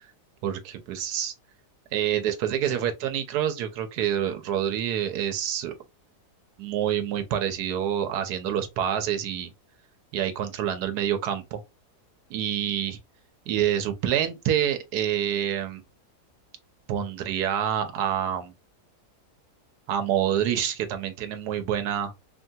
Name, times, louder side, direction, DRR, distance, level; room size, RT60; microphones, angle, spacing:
voice 1, 0.4-1.3 1.9-5.7 6.6-9.5 10.1-11.6 12.3-13.0 13.5-15.8 16.9-18.5 19.9-22.1, right 10 dB, 90° right, 1.2 m, -27 dB
3.2 x 2.7 x 2.2 m
omnidirectional pair, 1.7 m